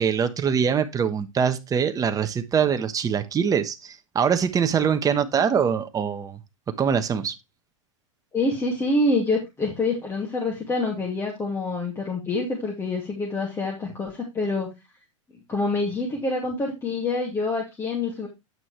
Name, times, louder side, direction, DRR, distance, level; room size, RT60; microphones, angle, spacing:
voice 1, 0.0-6.4 6.8-7.3, right 7 dB, 20° right, 1.2 m, -23 dB
voice 2, 8.3-14.7 15.5-18.3, left 2 dB, 15° left, 2.6 m, -26 dB
9.3 x 6.0 x 3.3 m
hypercardioid pair, 105°, 16 cm